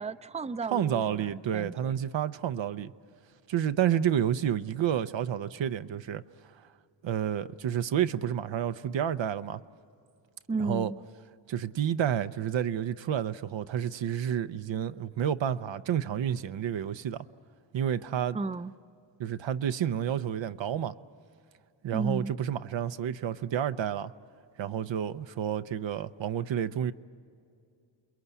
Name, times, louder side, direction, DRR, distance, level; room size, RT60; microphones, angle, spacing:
voice 1, 0.0-1.9 10.5-11.0 18.3-18.7 21.9-22.3, right 3 dB, 15° right, 0.6 m, -34 dB
voice 2, 0.7-2.9 3.5-6.2 7.0-9.6 10.6-10.9 11.5-17.3 17.7-18.4 19.2-20.9 21.8-24.1 24.6-26.9, right 9 dB, 75° right, 0.7 m, -30 dB
29.0 x 21.5 x 8.3 m
cardioid pair, 65°, 46 cm